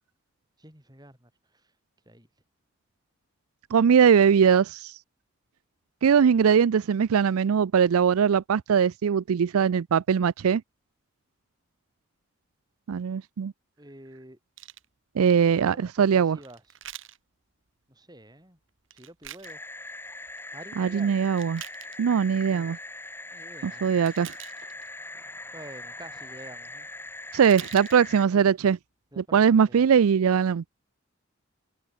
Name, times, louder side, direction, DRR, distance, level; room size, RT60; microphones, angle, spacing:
voice 1, 0.6-1.7 2.1-2.3 13.8-14.4 15.2-16.6 17.9-18.6 18.9-19.6 20.5-21.3 22.5-22.8 23.3-23.9 25.1-26.9 29.1-29.8, right 1 dB, 20° right, 7.7 m, -48 dB
voice 2, 3.7-5.0 6.0-10.6 12.9-13.5 15.2-16.4 20.8-21.6 22.0-22.8 23.6-24.3 27.3-28.8 29.2-30.6, right 7 dB, 85° right, 0.4 m, -21 dB
sound 1, 14.6-14.9 16.4-17.2 18.9-19.6 20.1-20.5 21.2-22.0 24.1-24.9 27.0-27.1 27.3-28.0 28.6-28.7, right 12 dB, 60° right, 2.4 m, -44 dB
sound 2, 19.4-28.3, left 2 dB, 10° left, 1.0 m, -41 dB
head